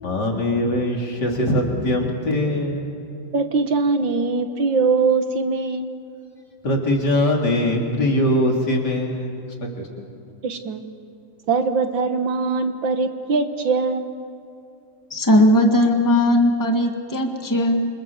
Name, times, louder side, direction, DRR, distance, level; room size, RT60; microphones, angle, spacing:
voice 1, 0.0-2.9 6.6-9.4 9.8-9.9, left 1 dB, 55° left, 0 dB, 4.1 m, -21 dB
voice 2, 3.3-5.9 10.4-10.8 11.5-14.1, right 4 dB, 70° right, 8 dB, 2.1 m, -21 dB
voice 3, 15.1-17.9, left 1 dB, 10° left, 3 dB, 1.7 m, -18 dB
27.5 x 26.0 x 7.3 m, 2.7 s
omnidirectional pair, 2.1 m